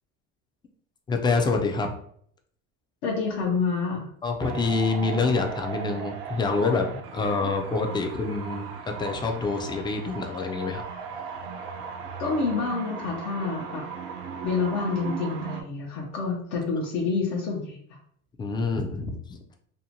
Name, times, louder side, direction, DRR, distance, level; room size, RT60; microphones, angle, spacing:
voice 1, 1.1-1.9 4.2-8.7 9.0-10.8 18.4-19.2, left 4 dB, 15° left, 3 dB, 0.3 m, -26 dB
voice 2, 3.0-4.1 12.2-13.8 14.4-17.8, left 4 dB, 65° left, -2 dB, 0.7 m, -28 dB
sound 1, 4.4-15.6, right 6 dB, 70° right, 0.6 m, -37 dB
2.6 x 2.1 x 2.8 m, 0.64 s
supercardioid pair, 105°, 35 cm